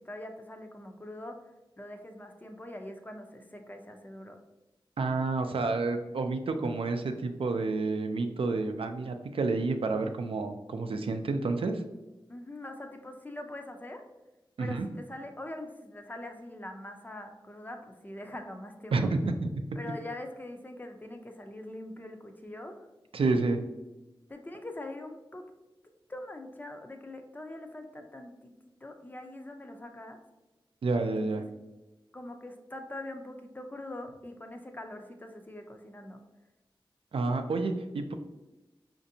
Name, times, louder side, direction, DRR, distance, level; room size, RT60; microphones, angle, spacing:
voice 1, 0.0-1.4 1.8-4.4 12.3-14.0 14.6-19.1 19.8-22.9 24.3-25.5 26.1-28.5 28.8-30.2 31.0-31.4 32.1-36.2, left 1 dB, 20° left, 4 dB, 0.4 m, -43 dB
voice 2, 5.0-11.8 14.6-14.9 18.9-19.6 23.1-23.6 30.8-31.4 37.1-38.1, right 3 dB, 85° right, 6 dB, 0.4 m, -29 dB
5.0 x 2.6 x 2.7 m, 1.0 s
wide cardioid pair, 90°, 9 cm